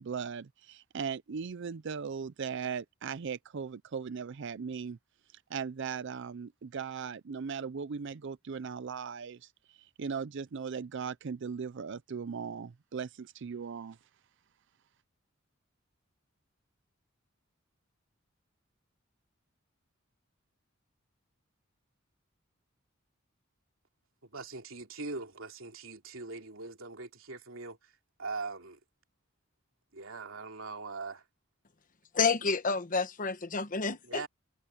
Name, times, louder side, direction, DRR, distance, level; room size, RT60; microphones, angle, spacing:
voice 1, 0.0-5.0 5.5-14.0, right 6 dB, 65° right, 0.5 m, -38 dB
voice 2, 24.2-27.9 28.2-28.8 29.9-31.2 34.0-34.3, right 3 dB, 85° right, 2.9 m, -41 dB
voice 3, 32.1-34.3, left 4 dB, 40° left, 1.1 m, -29 dB
head